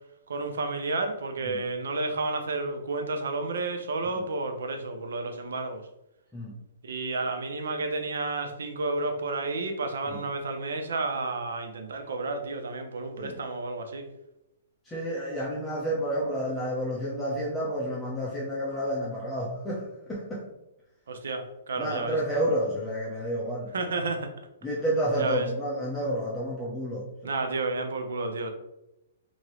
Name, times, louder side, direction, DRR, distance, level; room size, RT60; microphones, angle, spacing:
voice 1, 0.3-5.8 6.8-14.1 21.1-22.2 23.7-24.3 25.2-25.5 27.2-28.5, right 3 dB, 80° right, 5 dB, 0.5 m, -31 dB
voice 2, 14.9-19.8 20.1-20.4 21.8-23.7 24.6-27.1, equal, 10° left, -7 dB, 0.6 m, -30 dB
2.8 x 2.6 x 3.0 m, 0.89 s
hypercardioid pair, 145°, 0 cm